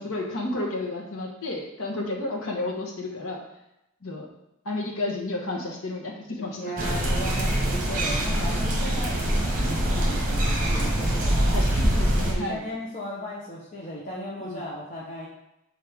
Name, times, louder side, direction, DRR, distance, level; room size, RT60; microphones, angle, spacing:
voice 1, 0.0-3.4 4.0-4.3 4.6-6.7 11.4-12.6 14.4-14.6, left 2 dB, 75° left, -1 dB, 1.3 m, -31 dB
voice 2, 6.6-11.6 12.2-15.3, equal, 35° left, -6 dB, 1.0 m, -36 dB
sound 1, 6.8-12.3, right 1 dB, 35° right, 1.2 m, -24 dB
6.4 x 4.3 x 3.6 m, 0.88 s
head